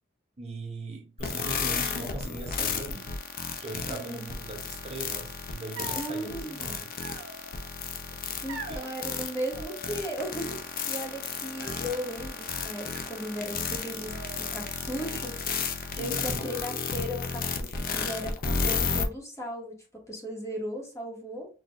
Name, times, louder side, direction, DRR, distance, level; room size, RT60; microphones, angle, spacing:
voice 1, 0.4-3.1 3.6-6.9 8.1-8.9 16.0-16.5, right 2 dB, 35° right, 0.8 m, -40 dB
sound 1, 1.2-19.0, left 5 dB, 45° left, 0.6 m, -33 dB
voice 2, 3.9-4.3 5.9-6.7 8.4-14.2 14.5-19.8 20.1-21.5, equal, 15° left, 1.3 m, -36 dB
sound 2, 5.8-6.2 7.0-7.7 8.5-8.9 9.5-10.3 10.6-11.2 11.6-12.1 12.8-13.8 14.1-14.8, right 4 dB, 65° right, 1.1 m, -44 dB
6.1 x 2.6 x 2.4 m
head